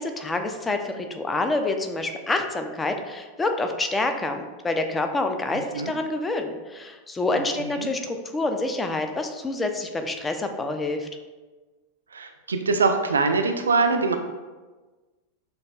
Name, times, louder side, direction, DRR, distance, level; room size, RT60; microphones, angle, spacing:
voice 1, 0.0-11.1, left 2 dB, 15° left, 6 dB, 0.4 m, -27 dB
voice 2, 12.1-14.2, right 4 dB, 70° right, 6 dB, 0.3 m, -23 dB
6.3 x 2.2 x 2.2 m, 1.3 s
figure-of-eight pair, 90°, 0 cm